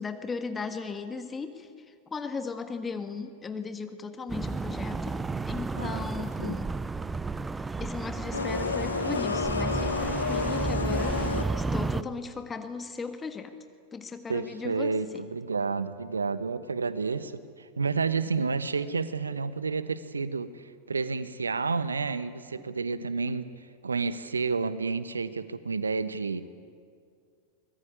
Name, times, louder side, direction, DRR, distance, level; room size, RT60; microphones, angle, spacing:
voice 1, 0.0-5.2 5.5-6.8 7.8-13.5 13.9-15.3, left 4 dB, 15° left, 8 dB, 1.6 m, -37 dB
sound 1, 4.3-12.0, right 3 dB, 10° right, 0.7 m, -32 dB
voice 2, 5.8-6.1 6.4-6.6 14.3-17.3 17.6-23.5 23.8-26.4, right 4 dB, 75° right, 14 dB, 1.1 m, -30 dB
sound 2, 8.3-11.8, left 4 dB, 75° left, 1.1 m, -30 dB
24.5 x 20.0 x 9.7 m, 2.2 s
figure-of-eight pair, 90°, 0 cm